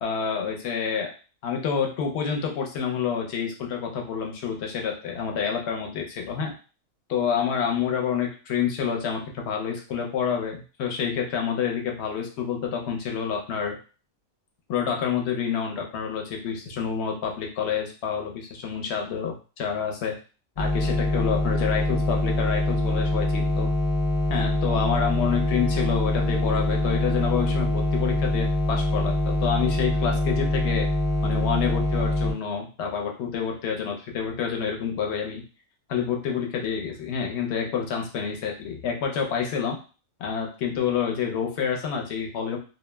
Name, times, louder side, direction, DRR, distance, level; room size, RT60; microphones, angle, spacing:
voice 1, 0.0-1.1 1.4-6.5 7.1-13.8 14.7-20.2 20.6-23.7 24.3-30.9 31.2-35.4 35.9-39.8 40.2-42.6, left 7 dB, 60° left, 2 dB, 0.8 m, -28 dB
sound 1, 20.6-32.3, left 1 dB, 40° left, 0.4 m, -24 dB
2.3 x 2.1 x 3.2 m, 0.35 s
omnidirectional pair, 1.4 m